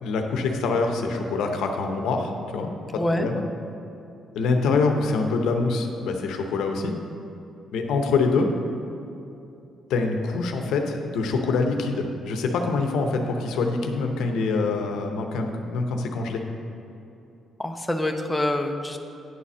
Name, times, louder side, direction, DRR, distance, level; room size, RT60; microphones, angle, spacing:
voice 1, 0.0-3.4 4.3-6.9 7.7-8.5 9.9-16.4, left 4 dB, 85° left, 4 dB, 0.8 m, -25 dB
voice 2, 2.9-3.3 17.6-19.0, left 1 dB, 10° left, 4 dB, 0.6 m, -26 dB
9.5 x 4.2 x 6.1 m, 2.8 s
cardioid pair, 90°, 0 cm